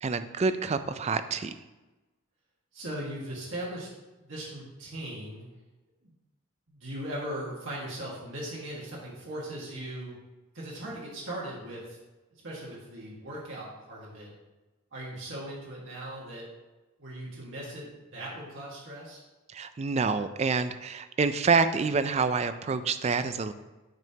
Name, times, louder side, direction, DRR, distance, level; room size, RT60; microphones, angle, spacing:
voice 1, 0.0-1.5 19.5-23.5, right 4 dB, 30° right, 11 dB, 0.3 m, -27 dB
voice 2, 2.7-3.9 4.2-5.5 6.0-6.1 6.7-10.2 10.5-12.0 12.3-14.3 14.9-16.5 17.0-19.2, right 1 dB, 65° right, -6 dB, 1.6 m, -39 dB
9.1 x 5.3 x 2.8 m, 1.1 s
head